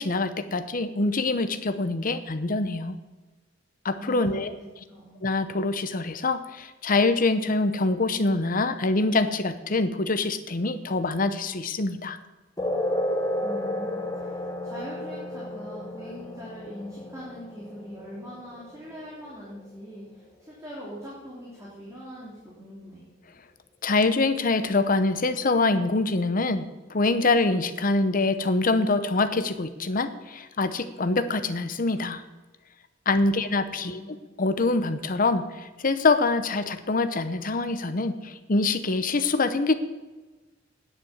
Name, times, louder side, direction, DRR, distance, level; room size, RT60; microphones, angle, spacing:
voice 1, 0.0-3.0 3.8-4.5 5.2-12.2 23.8-32.2 33.1-34.0 34.4-39.7, left 3 dB, 45° left, 11 dB, 0.8 m, -25 dB
voice 2, 3.9-5.2 13.4-23.0 33.4-33.5 33.8-34.2, equal, 15° right, -6 dB, 3.2 m, -42 dB
sound 1, 12.6-19.6, left 1 dB, 20° left, 1.3 m, -32 dB
9.8 x 8.6 x 8.1 m, 1.2 s
head